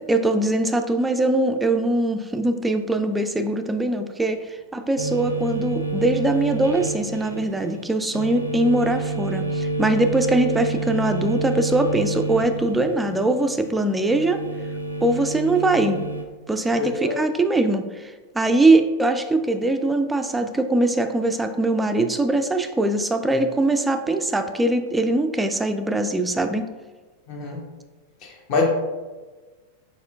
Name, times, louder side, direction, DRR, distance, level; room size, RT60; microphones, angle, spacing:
voice 1, 0.1-14.4 15.0-16.0 16.5-26.7, right 2 dB, 10° right, 7 dB, 0.3 m, -22 dB
sound 1, 5.0-16.2, right 2 dB, 80° right, 0.4 m, -29 dB
voice 2, 16.8-17.1 27.3-27.6 28.2-28.7, left 4 dB, 40° left, 0 dB, 1.0 m, -25 dB
4.8 x 4.2 x 2.4 m, 1.3 s
figure-of-eight pair, 90°, 0 cm